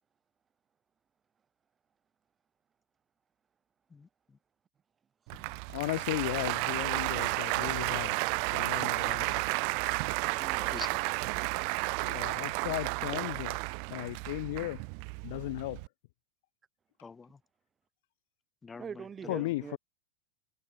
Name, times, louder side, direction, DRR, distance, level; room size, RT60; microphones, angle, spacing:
voice 1, 3.9-4.4 5.3-5.5 10.7-11.6 17.0-17.4 18.6-19.5, left 4 dB, 15° left, 1.9 m, -48 dB
Applause, 5.3-15.9, right 40 dB or more, 45° right, 0.9 m, -32 dB
voice 2, 5.7-8.2 8.5-9.5 12.0-13.6 13.9-14.8 15.2-15.8 19.3-19.8, left 19 dB, 50° left, 1.4 m, -36 dB
voice 3, 10.2-10.7 18.8-19.8, right 7 dB, 20° right, 1.4 m, -43 dB
figure-of-eight pair, 90°, 0 cm